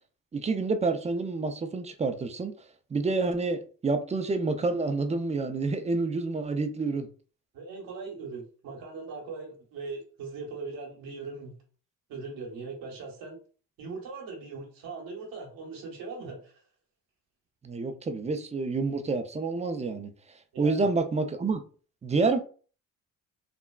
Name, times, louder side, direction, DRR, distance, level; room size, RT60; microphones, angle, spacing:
voice 1, 0.3-2.5 2.9-7.1 17.6-20.1 20.6-21.6 22.0-22.4, right 3 dB, 20° right, 0.4 m, -28 dB
voice 2, 7.5-11.5 12.1-13.4 13.8-16.6 20.5-20.9, right 4 dB, 80° right, 1.2 m, -40 dB
3.6 x 2.1 x 2.2 m
cardioid pair, 85°, 34 cm